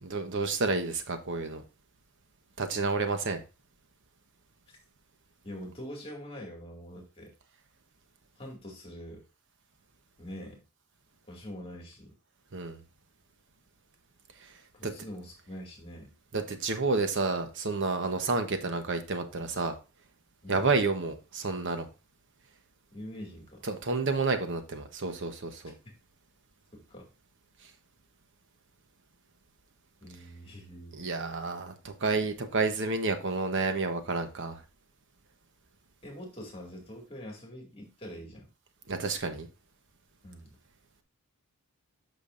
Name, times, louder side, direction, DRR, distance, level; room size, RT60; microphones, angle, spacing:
voice 1, 0.0-1.6 2.6-3.4 12.5-12.8 14.8-14.9 16.3-19.7 20.5-21.9 23.7-25.7 31.0-34.6 38.9-39.5, right 3 dB, 60° right, 1.0 m, -30 dB
voice 2, 5.4-7.3 8.4-9.2 10.2-10.6 11.3-12.2 14.7-16.1 18.1-18.3 20.4-20.7 22.9-23.7 25.8-26.0 26.7-27.1 30.0-31.0 36.0-38.5 40.2-40.5, equal, 25° left, 2.1 m, -44 dB
8.5 x 6.0 x 2.5 m
head